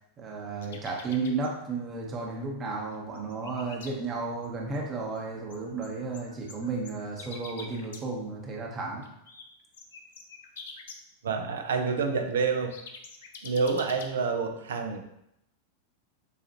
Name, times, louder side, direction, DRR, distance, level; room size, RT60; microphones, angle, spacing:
voice 1, 0.2-9.1, right 3 dB, 25° right, -1 dB, 0.9 m, -33 dB
sound 1, 0.6-1.5 2.7-2.8 2.9-3.9 4.4-4.5 4.7-4.8 5.2-8.0 8.8-9.4 9.7-11.0 12.3-14.1, left 5 dB, 60° left, 0.5 m, -46 dB
voice 2, 11.2-12.7 13.4-15.2, right 5 dB, 65° right, 5 dB, 0.5 m, -28 dB
7.0 x 2.5 x 2.9 m, 0.79 s
figure-of-eight pair, 90°, 0 cm